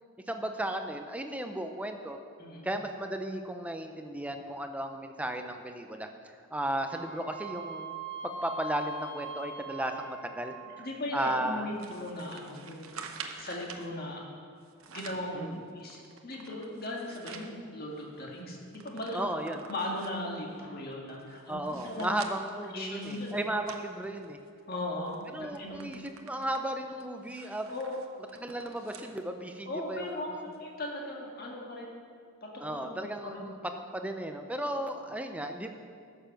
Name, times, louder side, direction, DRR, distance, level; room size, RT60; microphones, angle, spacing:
voice 1, 0.3-2.2 2.6-8.0 8.2-10.9 11.1-11.7 15.3-15.6 19.1-19.6 21.5-24.4 25.3-27.7 28.3-30.4 32.6-33.6 33.9-35.7, right 1 dB, 5° right, 6 dB, 0.6 m, -35 dB
Wind instrument woodwind instrument, 6.9-10.8, right 2 dB, 70° left, 1.3 m, -41 dB
voice 2, 10.8-12.9 13.4-14.2 14.9-15.5 15.7-22.1 22.7-23.4 24.7-25.8 27.7-28.0 29.7-31.9 32.7-32.8 33.2-33.4, left 1 dB, 45° left, -1 dB, 1.8 m, -38 dB
sound 1, 11.8-13.9 14.6-15.3 15.8-17.5 18.0-18.1 18.3-20.3 20.9-24.7 25.1-25.2 25.5-29.2 29.6-29.7 30.5-30.6, right 6 dB, 75° right, 0.9 m, -48 dB
14.0 x 6.9 x 5.9 m, 2.2 s
head